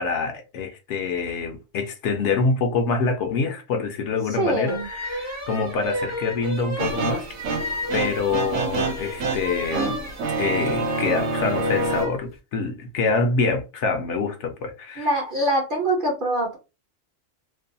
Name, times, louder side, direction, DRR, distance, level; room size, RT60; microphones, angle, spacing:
voice 1, 0.0-7.3 7.9-10.0 10.4-15.2, left 4 dB, 70° left, 0.8 m, -26 dB
voice 2, 4.4-4.9 15.0-16.6, right 1 dB, 50° right, 0.7 m, -23 dB
sound 1, 4.7-12.2, left 1 dB, 20° right, 0.5 m, -32 dB
sound 2, 6.8-12.1, right 3 dB, 80° right, 0.9 m, -27 dB
2.6 x 2.1 x 2.6 m
omnidirectional pair, 1.3 m